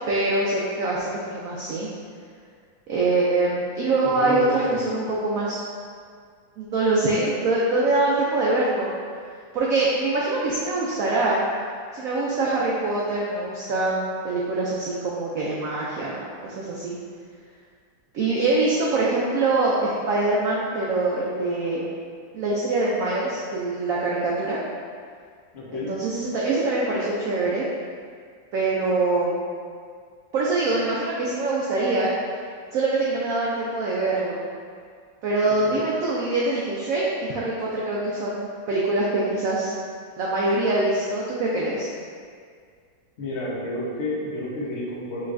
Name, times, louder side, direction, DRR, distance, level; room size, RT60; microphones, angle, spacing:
voice 1, 0.1-1.9 2.9-5.6 6.6-8.9 9.5-11.4 11.9-17.0 18.1-21.8 22.3-24.6 25.7-27.6 28.5-29.4 30.3-32.1 32.7-34.4 35.2-39.7 40.2-41.9, right 2 dB, 85° right, -5 dB, 0.7 m, -24 dB
voice 2, 4.0-4.8 25.5-25.9 35.7-35.8 43.2-45.3, left 1 dB, 50° left, -6 dB, 0.9 m, -30 dB
5.5 x 3.1 x 2.5 m, 2.1 s
omnidirectional pair, 2.1 m